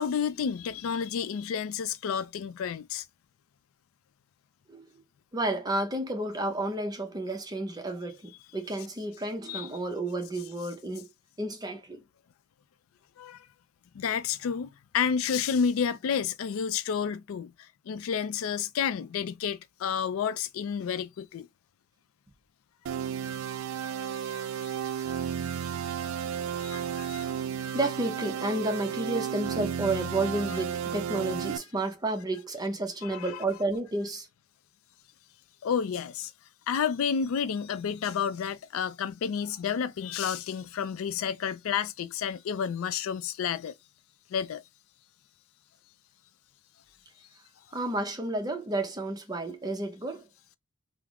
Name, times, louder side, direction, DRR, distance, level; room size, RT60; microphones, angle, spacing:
voice 1, 0.0-3.0 9.5-9.7 13.2-13.5 13.9-21.5 24.2-24.7 26.6-27.3 33.0-33.3 35.6-36.3 36.7-43.7 44.3-44.6, left 7 dB, 80° left, 0.3 m, -30 dB
voice 2, 5.3-11.1 11.4-12.0 27.7-34.3 47.7-50.3, right 2 dB, 20° right, 0.6 m, -31 dB
sound 1, 22.9-31.6, right 8 dB, 75° right, 0.3 m, -33 dB
3.4 x 2.0 x 3.5 m
head